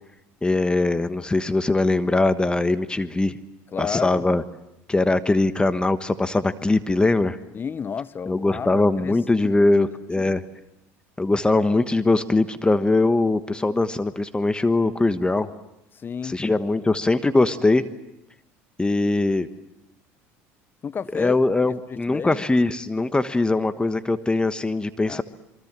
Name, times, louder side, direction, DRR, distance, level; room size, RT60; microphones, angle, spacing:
voice 1, 0.4-3.4 3.8-4.4 4.9-7.4 8.3-10.4 11.2-15.5 16.2-17.8 18.8-19.5 21.1-25.2, left 2 dB, 15° left, 1.3 m, -21 dB
voice 2, 3.7-4.2 7.5-9.9 10.2-10.4 15.9-16.4 20.8-21.4 21.6-22.5 25.1-25.2, left 6 dB, 30° left, 0.9 m, -32 dB
27.5 x 24.0 x 7.5 m
supercardioid pair, 90°, 7 cm